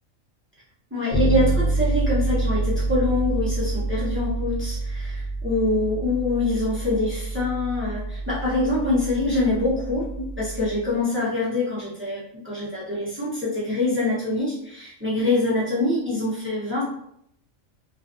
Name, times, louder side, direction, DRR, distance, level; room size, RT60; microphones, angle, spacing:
voice 1, 0.9-16.8, left 2 dB, 20° right, -8 dB, 0.3 m, -25 dB
Bass guitar, 1.1-10.9, right 2 dB, 55° left, 0.6 m, -27 dB
2.4 x 2.2 x 2.4 m, 0.74 s
omnidirectional pair, 1.4 m